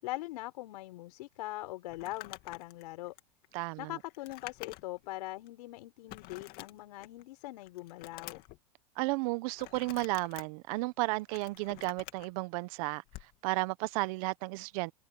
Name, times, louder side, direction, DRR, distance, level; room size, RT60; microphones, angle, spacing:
voice 1, 0.0-3.1 3.8-8.4, left 18 dB, 70° left, 6.0 m, -42 dB
Crumpling crinkling, 1.9-5.1 5.5-5.6 6.1-7.2 7.6-8.6 9.6-10.4 11.1-12.3 13.1-13.3, left 19 dB, 45° left, 2.3 m, -48 dB
voice 2, 3.5-4.0 9.0-13.0 13.4-14.9, right 23 dB, 55° right, 1.2 m, -33 dB
hypercardioid pair, 120°, 21 cm